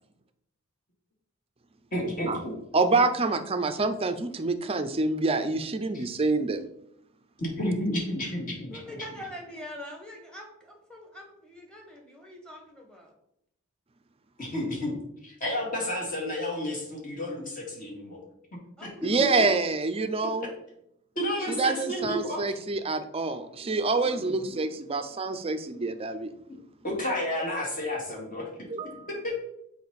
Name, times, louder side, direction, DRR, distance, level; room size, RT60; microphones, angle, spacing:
voice 1, 1.9-2.5 5.9-6.0 7.4-8.8 14.4-15.0 15.2-18.2 18.8-19.1 21.2-22.4 26.5-26.6 26.8-28.5 29.1-29.3, left 1 dB, 40° left, -2 dB, 2.2 m, -31 dB
voice 2, 2.7-6.6 19.0-20.5 21.5-26.3 28.7-29.1, right 3 dB, 25° right, 9 dB, 0.5 m, -27 dB
voice 3, 8.7-13.1 18.8-19.5 27.0-27.2, left 1 dB, 5° left, 1 dB, 1.4 m, -43 dB
6.7 x 5.1 x 4.1 m, 0.77 s
head